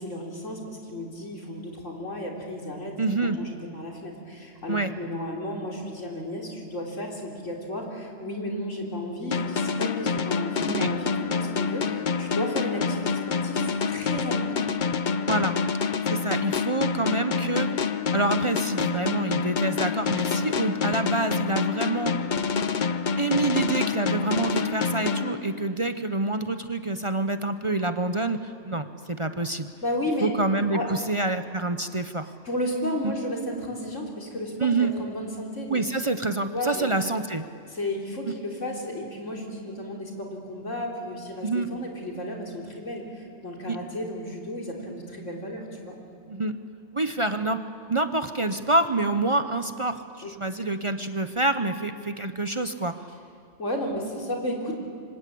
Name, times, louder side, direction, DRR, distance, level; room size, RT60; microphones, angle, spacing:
voice 1, 0.0-14.7 29.8-30.3 30.7-30.9 32.4-35.8 36.5-36.9 37.6-46.0 50.2-50.3 53.6-54.7, left 1 dB, 90° left, 0 dB, 4.2 m, -33 dB
voice 2, 3.0-3.4 4.7-4.9 10.7-10.9 15.2-15.6 16.1-17.7 18.1-22.2 23.2-29.7 30.2-32.3 33.0-33.1 34.6-34.9 35.7-37.4 41.4-41.7 43.7-43.8 46.3-46.6 46.9-47.6 47.9-52.9, right 2 dB, 30° right, 9 dB, 0.8 m, -27 dB
sound 1, 9.3-25.9, left 5 dB, 45° left, 0.8 m, -27 dB
28.0 x 25.0 x 8.5 m, 2.3 s
omnidirectional pair, 1.2 m